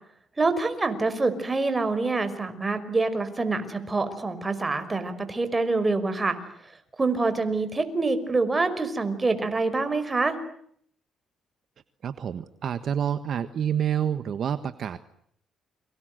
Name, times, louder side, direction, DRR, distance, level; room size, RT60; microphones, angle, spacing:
voice 1, 0.4-6.4 7.0-10.4, right 3 dB, 25° right, 10 dB, 5.5 m, -26 dB
voice 2, 12.0-15.0, right 9 dB, 60° right, 11 dB, 1.4 m, -28 dB
29.5 x 25.5 x 8.0 m, 0.67 s
cardioid pair, 90°, 0 cm